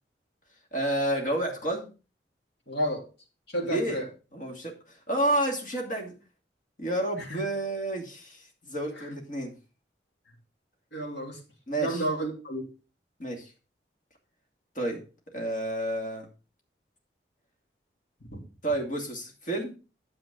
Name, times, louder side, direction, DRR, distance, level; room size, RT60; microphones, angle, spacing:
voice 1, 0.7-1.9 3.7-4.0 4.3-6.2 6.8-9.5 11.7-12.0 13.2-13.5 14.7-15.0 15.3-16.3 18.6-19.8, right 1 dB, 45° left, 0 dB, 2.6 m, -30 dB
voice 2, 2.7-3.0 3.5-4.1 7.2-7.4 9.0-9.1 10.9-11.4 11.8-12.7 18.2-18.4, equal, 70° left, -1 dB, 3.6 m, -31 dB
9.8 x 7.3 x 3.8 m, 0.33 s
head